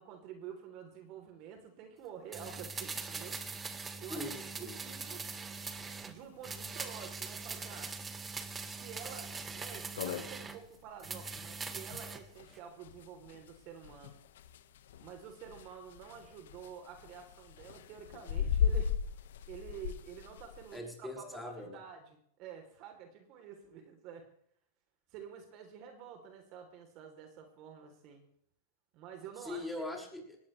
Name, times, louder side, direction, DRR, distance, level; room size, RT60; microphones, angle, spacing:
voice 1, 0.0-3.4 4.0-4.2 4.6-5.3 6.0-7.9 8.7-14.2 15.0-18.9 19.5-24.3 25.1-28.2 28.9-29.7, right 7 dB, 45° right, 4 dB, 3.6 m, -49 dB
sound 1, 2.3-6.1 6.4-10.6 11.0-12.2 12.5-12.6, right 4 dB, 15° right, 1.8 m, -42 dB
voice 2, 4.1-4.7 20.7-21.8 29.4-30.4, left 1 dB, ahead, 0 dB, 6.1 m, -41 dB
sound 2, 5.8-5.9 6.1-6.2 6.6-6.7 7.2-7.5 8.0-8.1 8.6-8.7 9.0-9.1 9.5-9.6 9.8-20.8, left 8 dB, 75° left, 1.5 m, -37 dB
19.5 x 17.0 x 3.4 m, 0.67 s
hypercardioid pair, 120°, 0 cm